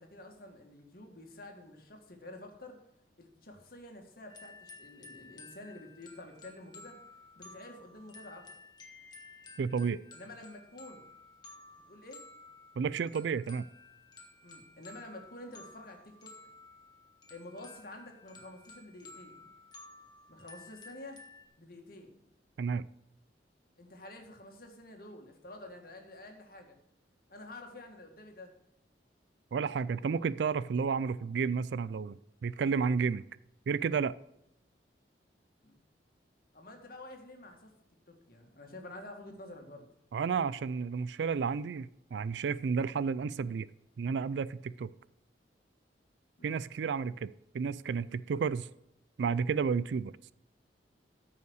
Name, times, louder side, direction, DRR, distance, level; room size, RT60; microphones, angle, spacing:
voice 1, 0.0-2.8 3.2-7.0 7.4-8.5 10.1-11.1 11.9-12.2 14.4-16.3 17.3-19.5 20.3-21.2 21.6-22.1 23.8-26.8 27.3-28.5 35.6-35.8 36.5-37.7 38.1-39.9 46.4-46.6, left 1 dB, 55° left, 3 dB, 2.0 m, -49 dB
sound 1, 4.3-21.5, left 3 dB, 25° left, 1.5 m, -54 dB
voice 2, 9.6-10.0 12.8-13.6 22.6-22.9 29.5-33.2 33.7-34.1 40.1-43.7 44.0-44.9 46.4-48.7 49.2-50.1, right 5 dB, 75° right, 17 dB, 0.4 m, -31 dB
14.0 x 5.6 x 6.4 m, 0.80 s
head